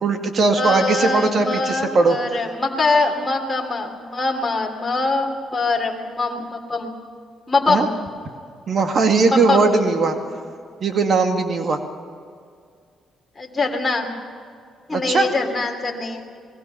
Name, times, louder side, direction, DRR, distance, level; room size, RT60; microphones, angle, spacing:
voice 1, 0.0-2.2 7.7-7.9 8.7-10.2 10.8-11.8 14.9-15.3, right 3 dB, 50° right, 5 dB, 2.2 m, -19 dB
voice 2, 0.5-7.0 7.5-7.9 9.2-9.7 13.4-14.1 14.9-16.2, left 3 dB, 20° left, 0 dB, 3.1 m, -23 dB
26.0 x 21.0 x 5.7 m, 2.2 s
cardioid pair, 90°, 0 cm